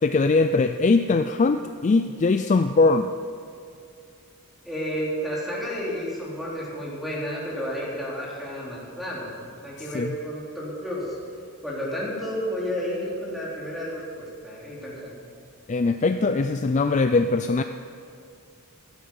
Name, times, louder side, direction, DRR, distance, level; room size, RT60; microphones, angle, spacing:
voice 1, 0.0-3.1 9.9-10.1 15.7-17.6, left 3 dB, 35° left, 8 dB, 0.4 m, -21 dB
voice 2, 4.6-11.2 11.6-15.2, equal, ahead, -6 dB, 3.5 m, -31 dB
15.5 x 12.0 x 5.5 m, 2.4 s
head